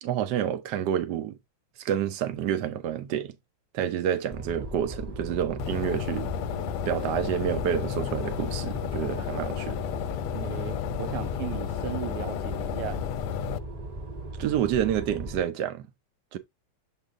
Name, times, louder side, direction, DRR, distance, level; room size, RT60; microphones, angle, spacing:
voice 1, 0.0-1.4 1.8-3.3 3.7-6.3 6.9-9.8 14.4-15.9 16.3-16.4, right 10 dB, 60° right, 1.3 m, -28 dB
sound 1, 4.3-15.4, right 1 dB, 20° right, 1.4 m, -38 dB
sound 2, 5.6-13.6, left 13 dB, 85° left, 1.5 m, -33 dB
voice 2, 10.3-13.0, right 13 dB, 90° right, 1.6 m, -36 dB
7.5 x 3.6 x 3.6 m
omnidirectional pair, 2.4 m